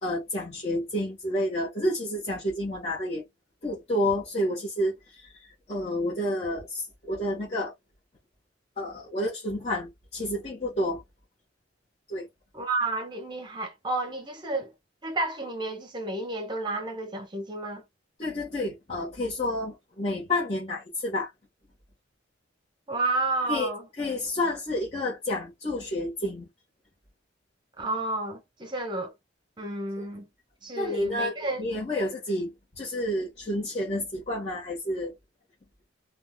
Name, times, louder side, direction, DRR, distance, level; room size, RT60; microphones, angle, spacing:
voice 1, 0.0-3.2 3.6-7.7 8.8-11.0 12.1-12.3 18.2-21.3 23.5-23.7 24.0-26.5 30.0-30.1 30.8-35.1, left 1 dB, 35° left, 1.2 m, -30 dB
voice 2, 12.5-14.7 15.0-17.8 22.9-23.9 27.8-29.1 29.6-30.3 30.6-31.6, right 2 dB, 25° right, 0.9 m, -31 dB
3.5 x 2.3 x 2.2 m
head